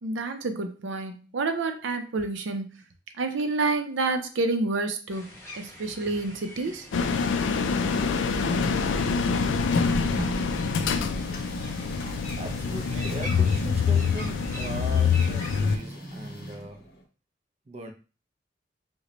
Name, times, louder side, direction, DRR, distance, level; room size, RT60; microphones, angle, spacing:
voice 1, 0.0-2.7 3.2-6.9, right 3 dB, 90° right, 0.5 m, -29 dB
sound 1, 5.1-15.6, equal, 10° left, 1.0 m, -44 dB
sound 2, 6.9-15.8, left 5 dB, 85° left, 0.3 m, -25 dB
Printer, 7.3-17.0, equal, 55° left, 0.8 m, -39 dB
voice 2, 12.4-16.9 17.7-17.9, right 1 dB, 35° right, 0.4 m, -39 dB
3.0 x 2.1 x 3.8 m
head